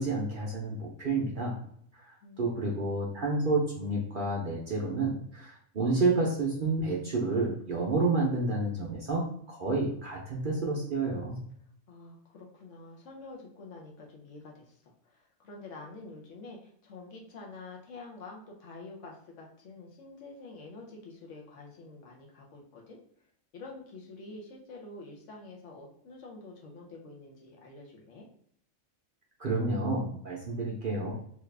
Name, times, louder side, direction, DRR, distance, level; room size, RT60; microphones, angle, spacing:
voice 1, 0.0-1.5 1.9-11.4 29.4-31.1, right 3 dB, 55° right, -2 dB, 0.6 m, -30 dB
voice 2, 2.2-2.9 11.9-14.7 15.0-23.0 23.5-28.2, left 3 dB, 65° left, -1 dB, 1.1 m, -47 dB
3.3 x 2.4 x 3.2 m, 0.65 s
omnidirectional pair, 1.4 m